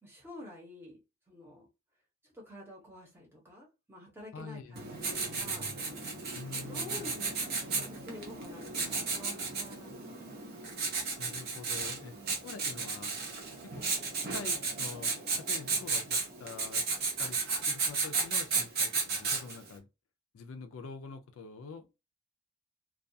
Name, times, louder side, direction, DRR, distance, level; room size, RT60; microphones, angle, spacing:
voice 1, 0.0-1.0 1.3-1.7 2.3-5.7 6.5-10.3 12.1-12.4, left 1 dB, 10° right, 0.7 m, -49 dB
voice 2, 4.3-4.8 6.3-7.1 11.2-12.1 12.4-13.2 13.7-13.8 14.3-16.8 17.2-17.4 17.7-19.9 20.3-21.9, left 4 dB, 75° left, 0.4 m, -45 dB
Writing, 4.8-19.7, right 4 dB, 45° right, 0.7 m, -34 dB
2.3 x 2.3 x 2.6 m
head